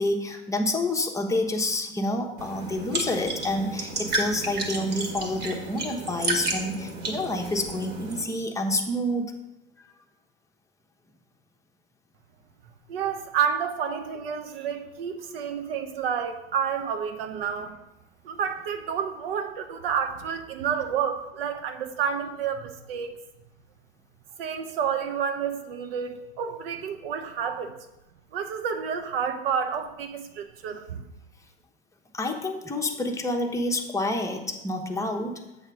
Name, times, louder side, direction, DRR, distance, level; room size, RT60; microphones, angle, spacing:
voice 1, 0.0-9.3 32.1-35.4, left 1 dB, 10° left, 2 dB, 1.0 m, -28 dB
sound 1, 2.4-8.2, right 2 dB, 30° right, 1.8 m, -32 dB
voice 2, 12.9-17.8 18.2-23.2 24.4-27.9 28.3-31.0, right 7 dB, 65° right, 7 dB, 1.0 m, -30 dB
8.0 x 3.4 x 6.0 m, 0.95 s
hypercardioid pair, 85°, 31 cm